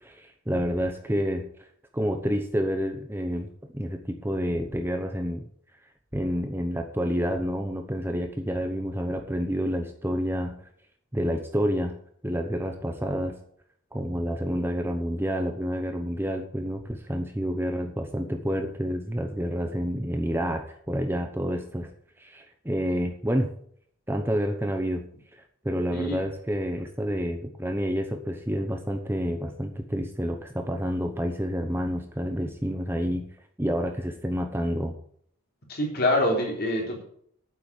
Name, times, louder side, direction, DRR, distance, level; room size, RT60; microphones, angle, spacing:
voice 1, 0.0-1.5 1.9-5.5 6.1-10.5 11.1-12.0 12.2-13.4 13.9-21.9 22.2-23.5 24.1-25.0 25.3-33.3 33.6-34.9, equal, 10° right, 5 dB, 0.8 m, -29 dB
voice 2, 35.7-37.0, left 1 dB, 45° left, 0 dB, 3.7 m, -25 dB
9.3 x 7.8 x 8.2 m, 0.64 s
head